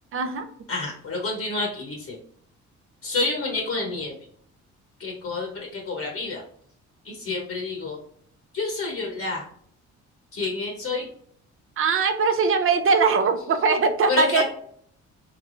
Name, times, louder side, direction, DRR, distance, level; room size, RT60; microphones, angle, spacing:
voice 1, 0.1-0.5 11.8-14.4, right 5 dB, 45° right, 8 dB, 0.5 m, -21 dB
voice 2, 0.7-2.2 3.0-4.1 5.0-6.4 7.0-8.0 8.5-9.5 10.3-11.1 14.1-14.4, left 3 dB, 50° left, 0 dB, 0.9 m, -28 dB
3.3 x 3.2 x 2.5 m, 0.63 s
cardioid pair, 90°, 30 cm